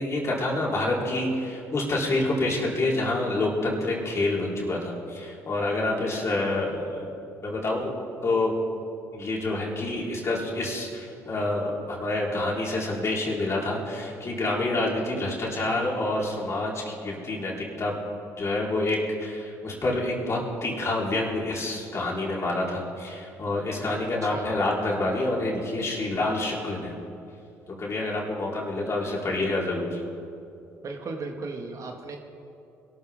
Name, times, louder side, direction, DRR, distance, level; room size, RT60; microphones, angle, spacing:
voice 1, 0.0-7.1 7.4-7.9 8.2-8.5 9.1-17.9 18.4-26.9 27.8-30.0, left 2 dB, 40° left, -4 dB, 4.3 m, -27 dB
voice 2, 30.8-32.2, right 3 dB, 50° right, 3 dB, 2.0 m, -36 dB
22.5 x 13.0 x 3.7 m, 2.6 s
hypercardioid pair, 60°, 7 cm